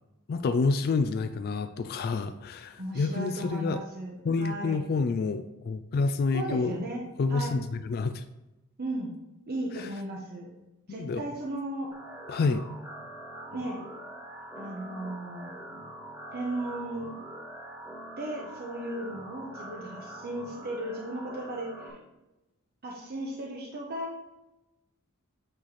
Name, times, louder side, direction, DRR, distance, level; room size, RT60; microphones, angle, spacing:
voice 1, 0.3-3.8 4.3-6.8 7.2-8.2 9.7-9.9 11.0-11.2 12.3-12.6, left 4 dB, 45° left, 10 dB, 0.3 m, -28 dB
voice 2, 2.8-4.8 6.3-7.0 7.3-7.6 8.8-9.1 9.5-10.5 10.9-11.9 13.5-13.8 14.6-15.5 16.3-17.1 18.2-22.0 22.8-24.1, right 1 dB, 45° right, -2 dB, 0.9 m, -36 dB
sound 1, 11.9-21.9, right 1 dB, 15° right, 1.5 m, -44 dB
8.6 x 3.2 x 4.1 m, 0.98 s
head